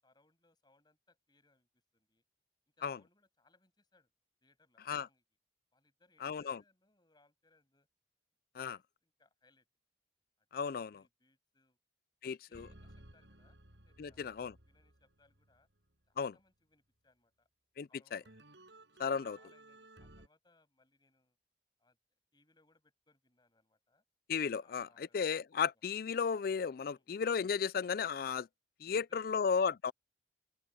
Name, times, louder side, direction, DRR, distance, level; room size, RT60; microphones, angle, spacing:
voice 1, 0.0-2.2 2.8-4.1 4.4-5.2 5.7-7.9 8.6-9.7 10.4-11.8 12.3-13.6 13.9-15.7 16.1-17.5 17.9-18.3 19.0-21.4 21.8-22.0 22.3-24.0 24.6-25.3 25.7-25.8 26.9-27.1 28.9-29.7, left 3 dB, 25° left, 7.6 m, -71 dB
voice 2, 6.2-6.6 8.6-8.8 10.5-11.0 12.2-12.7 14.0-14.5 16.2-16.3 17.8-18.2 19.0-19.4 24.3-28.5 28.8-29.9, left 6 dB, 55° left, 0.4 m, -34 dB
sound 1, 12.5-15.9 18.3-20.3, right 1 dB, 85° right, 6.2 m, -58 dB
open air
head